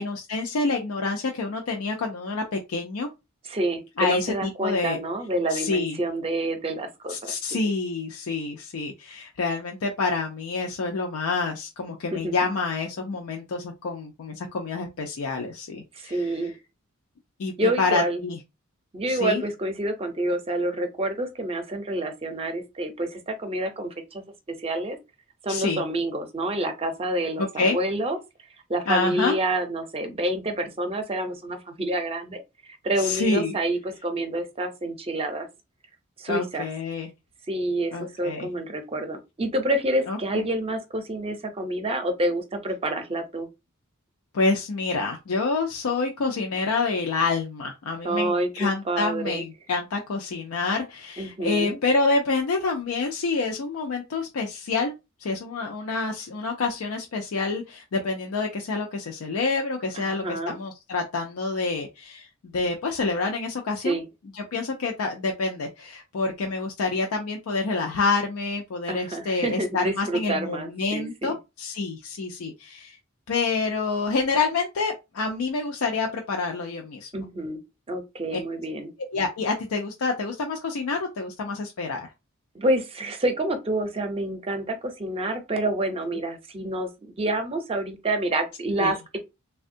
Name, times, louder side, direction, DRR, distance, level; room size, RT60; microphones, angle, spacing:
voice 1, 0.0-3.1 4.0-5.0 5.5-6.0 7.1-16.3 17.4-18.4 19.1-19.4 25.5-25.8 27.4-27.8 28.9-29.4 33.0-33.5 36.3-37.1 37.9-38.5 40.1-40.4 44.3-62.3 62.5-64.0 64.3-73.0 73.3-77.1 78.3-78.4 79.1-82.1 86.1-86.2 88.8-88.9, left 3 dB, 85° left, 0.5 m, -27 dB
voice 2, 3.4-7.6 12.1-12.3 15.9-16.6 17.6-18.2 18.9-24.2 24.5-25.0 25.4-28.2 28.7-35.5 36.2-36.7 37.5-43.5 48.0-49.4 51.2-51.8 59.9-60.6 63.8-64.0 68.9-71.3 77.1-77.6 77.9-78.9 82.5-89.2, right 1 dB, 30° right, 0.6 m, -28 dB
3.5 x 2.2 x 2.6 m
head